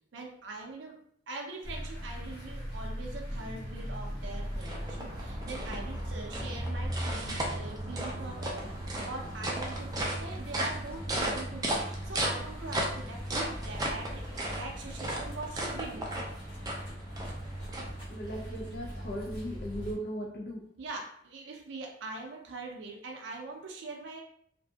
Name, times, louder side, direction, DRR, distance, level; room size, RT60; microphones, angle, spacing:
voice 1, 0.1-1.0 1.3-8.7 9.0-16.1 20.8-24.2, right 3 dB, 80° right, 0 dB, 0.5 m, -42 dB
sound 1, 1.6-19.9, equal, 30° left, 0.8 m, -39 dB
sound 2, 3.9-18.4, right 1 dB, 20° right, 0.4 m, -36 dB
voice 2, 18.1-20.6, equal, 55° left, -3 dB, 0.4 m, -38 dB
2.6 x 2.5 x 2.2 m, 0.67 s
head